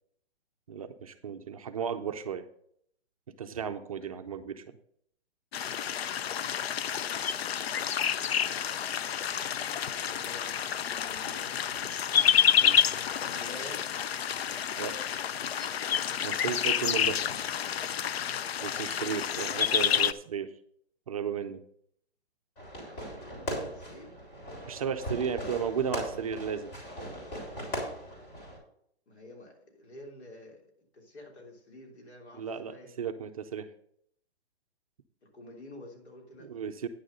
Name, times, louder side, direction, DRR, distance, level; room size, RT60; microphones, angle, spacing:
voice 1, 0.7-2.4 3.4-4.6 12.6-12.8 14.8-15.0 16.2-17.3 18.6-20.5 21.1-21.6 24.7-26.7 32.3-33.7 36.4-36.9, right 7 dB, 35° right, 8 dB, 0.6 m, -34 dB
sound 1, 5.5-20.1, left 8 dB, 70° left, 0.6 m, -29 dB
voice 2, 6.6-9.1 9.5-11.7 12.6-13.9 19.2-19.5 22.8-24.2 29.1-32.9 35.2-36.7, left 1 dB, 85° left, 1 dB, 3.4 m, -50 dB
Fireworks, 22.6-28.6, equal, 30° left, 3.6 m, -39 dB
9.6 x 6.5 x 5.4 m, 0.67 s
hypercardioid pair, 165°, 32 cm